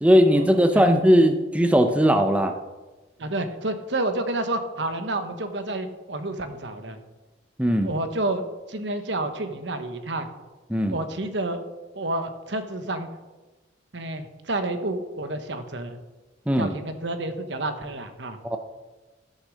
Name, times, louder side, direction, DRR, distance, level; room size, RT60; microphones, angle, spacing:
voice 1, 0.0-2.5 7.6-7.9 10.7-11.0 16.5-16.7 18.4-18.6, equal, 5° right, 6 dB, 0.6 m, -19 dB
voice 2, 3.2-7.0 7.8-8.4 8.7-10.3 10.9-11.6 11.9-13.1 13.9-16.0 16.6-18.4, right 2 dB, 70° right, 8 dB, 1.1 m, -29 dB
13.5 x 6.6 x 6.3 m, 1.2 s
head